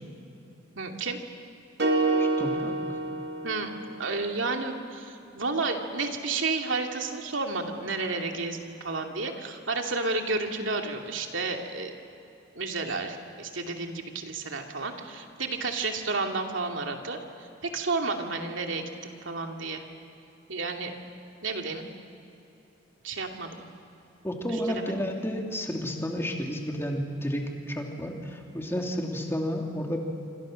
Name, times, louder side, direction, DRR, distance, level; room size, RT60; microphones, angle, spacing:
voice 1, 0.8-1.2 3.4-3.7 4.0-11.9 12.5-19.8 20.5-21.0 21.4-21.9 23.0-23.5 24.7-24.9, right 3 dB, 85° right, 3 dB, 2.6 m, -31 dB
sound 1, 1.8-4.1, right 2 dB, 60° right, 2.5 m, -27 dB
voice 2, 2.2-2.7 24.2-30.0, equal, 15° left, 1 dB, 2.8 m, -31 dB
26.5 x 26.0 x 6.4 m, 2.9 s
head